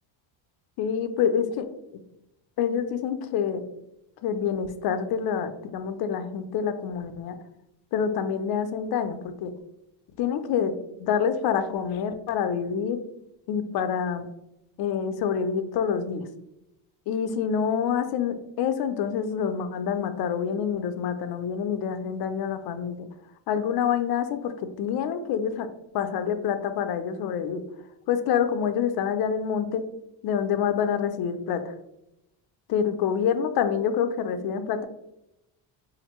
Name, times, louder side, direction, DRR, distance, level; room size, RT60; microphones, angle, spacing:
voice 1, 0.8-1.6 2.6-3.6 4.2-7.3 7.9-9.5 10.2-10.7 11.0-13.0 13.5-14.3 14.8-16.3 17.1-23.1 23.5-25.7 25.9-27.6 28.1-29.8 30.2-31.7 32.7-34.8, left 7 dB, 55° left, 9 dB, 0.5 m, -27 dB
4.2 x 2.6 x 2.9 m, 0.86 s
cardioid pair, 140°, 47 cm